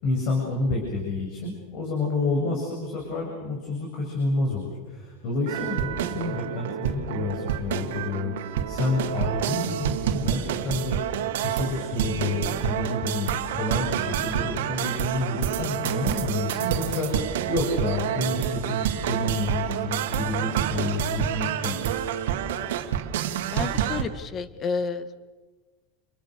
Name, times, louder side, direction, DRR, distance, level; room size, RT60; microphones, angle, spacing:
voice 1, 0.0-21.9, left 2 dB, 55° left, -1 dB, 8.0 m, -29 dB
sound 1, 5.5-24.0, right 10 dB, 80° right, 2.1 m, -28 dB
voice 2, 23.5-25.2, left 5 dB, 30° left, 13 dB, 1.7 m, -30 dB
29.5 x 23.5 x 6.9 m, 1.3 s
supercardioid pair, 125°, 0 cm